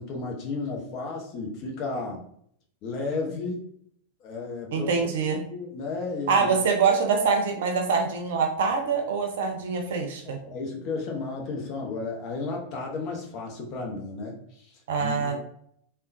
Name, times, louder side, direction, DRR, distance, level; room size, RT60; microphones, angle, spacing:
voice 1, 0.0-2.2 2.8-3.6 4.2-4.9 5.5-6.5 10.3-14.7 15.0-15.4, left 3 dB, 40° left, 0 dB, 0.8 m, -33 dB
voice 2, 4.7-5.4 6.3-10.4 14.9-15.4, right 5 dB, 55° right, 3 dB, 0.6 m, -24 dB
3.6 x 2.2 x 2.6 m, 0.67 s
figure-of-eight pair, 90°, 0 cm